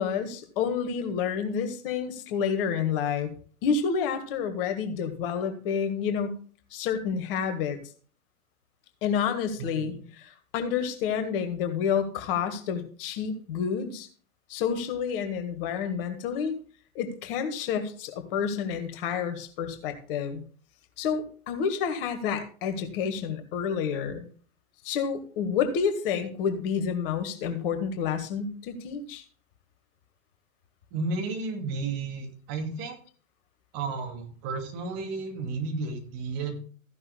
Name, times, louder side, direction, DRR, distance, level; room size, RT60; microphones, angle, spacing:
voice 1, 0.0-3.3 3.6-6.4 6.7-7.8 9.0-14.1 14.5-16.6 17.0-20.4 21.0-24.3 24.8-29.2, left 7 dB, 40° left, 7 dB, 1.8 m, -29 dB
voice 2, 9.6-10.0 30.9-33.0 33.7-36.6, right 3 dB, 35° right, 4 dB, 2.6 m, -33 dB
14.5 x 11.0 x 2.3 m, 0.42 s
figure-of-eight pair, 105°, 42 cm